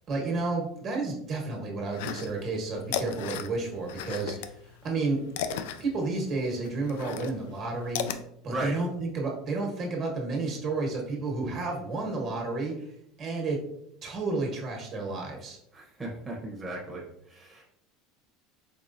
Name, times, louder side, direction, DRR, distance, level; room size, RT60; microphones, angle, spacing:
voice 1, 0.1-4.5 4.8-5.2 5.8-8.0 8.4-12.9 13.2-13.6 14.0-15.6, right 3 dB, 40° right, 0 dB, 1.3 m, -31 dB
sound 1, 1.9-2.6 2.8-4.5 4.8-8.2, left 8 dB, 80° left, 0.3 m, -34 dB
voice 2, 15.7-17.0 17.3-17.6, right 1 dB, 15° right, -4 dB, 0.9 m, -36 dB
4.7 x 3.6 x 2.6 m, 0.76 s
supercardioid pair, 125°, 0 cm